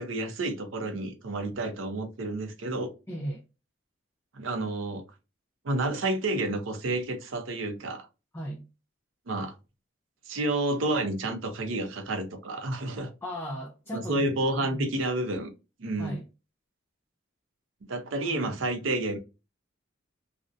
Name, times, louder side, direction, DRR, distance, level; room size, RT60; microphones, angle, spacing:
voice 1, 0.0-2.9 4.3-5.0 5.6-8.1 9.3-9.5 10.3-13.1 13.9-15.5 15.8-16.2 17.9-19.2, right 2 dB, 75° right, 0.5 m, -30 dB
voice 2, 3.1-3.4 8.3-8.7 13.2-14.3 14.6-14.9 16.0-16.2 18.2-18.5, right 1 dB, 10° left, 0.3 m, -36 dB
2.5 x 2.0 x 2.4 m
head